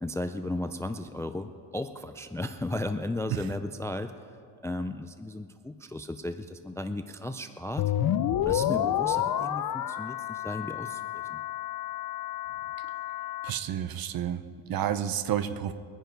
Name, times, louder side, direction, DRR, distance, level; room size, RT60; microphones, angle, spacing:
voice 1, 0.0-4.1 4.6-7.8 8.5-11.0 11.3-11.4, left 1 dB, 5° left, 9 dB, 0.3 m, -35 dB
sound 1, 7.8-13.5, left 11 dB, 50° left, 0.6 m, -30 dB
voice 2, 13.4-15.8, right 10 dB, 50° right, 13 dB, 0.8 m, -30 dB
22.5 x 10.0 x 4.6 m, 2.4 s
cardioid pair, 120°, 44 cm